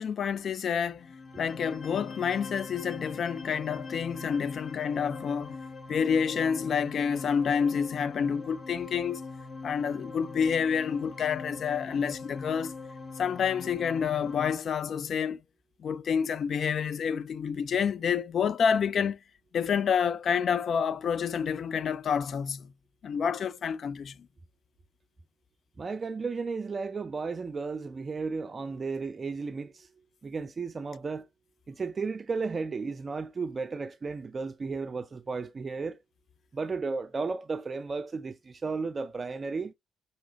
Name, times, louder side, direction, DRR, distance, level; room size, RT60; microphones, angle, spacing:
voice 1, 0.0-5.6 5.9-9.2 9.6-12.7 13.2-15.4 15.8-19.2 19.5-22.7 23.0-24.1, left 7 dB, 50° left, 0.4 m, -28 dB
sound 1, 1.0-14.5, left 3 dB, 35° left, 1.0 m, -42 dB
voice 2, 25.8-29.9 30.2-31.3 31.7-36.0 36.5-39.7, right 4 dB, 35° right, 0.5 m, -34 dB
5.9 x 2.8 x 3.1 m
figure-of-eight pair, 45°, 0 cm